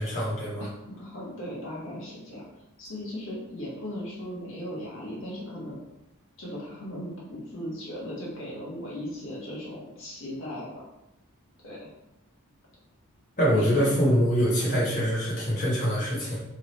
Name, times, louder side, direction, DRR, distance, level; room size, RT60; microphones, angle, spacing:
voice 1, 0.0-0.7 13.4-16.4, equal, 35° left, -8 dB, 1.3 m, -24 dB
voice 2, 0.6-2.4 2.8-5.8 6.4-10.9 11.6-11.9 13.5-13.9, left 1 dB, 60° left, -6 dB, 1.4 m, -37 dB
3.6 x 3.3 x 4.2 m, 0.89 s
head